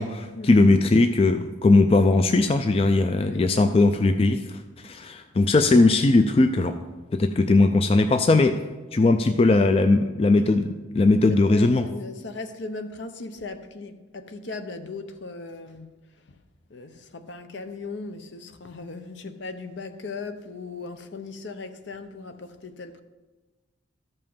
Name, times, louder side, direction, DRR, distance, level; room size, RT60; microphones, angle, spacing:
voice 1, 0.0-4.4 4.8-6.8 7.1-8.5 8.9-11.9, left 2 dB, 30° left, 0.3 m, -19 dB
voice 2, 3.2-3.9 4.3-4.4 11.3-15.9 16.3-16.4 16.7-23.0, left 3 dB, 70° left, 0.7 m, -38 dB
13.0 x 5.4 x 5.5 m
head